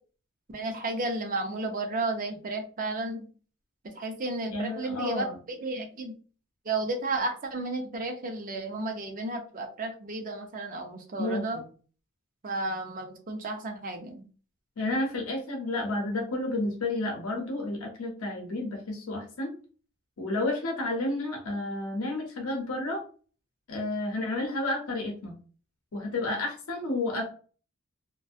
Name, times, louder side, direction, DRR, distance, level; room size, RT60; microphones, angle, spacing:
voice 1, 0.5-3.3 4.0-6.1 6.6-11.6 12.4-14.2, right 2 dB, 40° right, 3 dB, 0.5 m, -33 dB
voice 2, 4.5-5.4 11.2-11.7 14.8-19.5 20.2-23.0 23.7-25.4 25.9-27.2, left 2 dB, 80° left, 1 dB, 0.7 m, -31 dB
2.5 x 2.1 x 2.4 m, 0.39 s
head